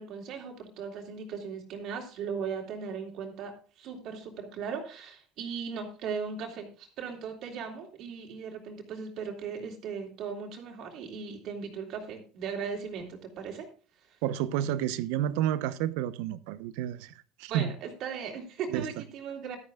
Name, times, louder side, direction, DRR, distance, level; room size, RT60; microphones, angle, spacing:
voice 1, 0.0-13.7 17.5-19.6, right 6 dB, 55° right, 3.3 m, -38 dB
voice 2, 14.2-17.7 18.7-18.9, right 11 dB, 85° right, 0.9 m, -30 dB
15.5 x 12.5 x 2.4 m
cardioid pair, 130°, 0 cm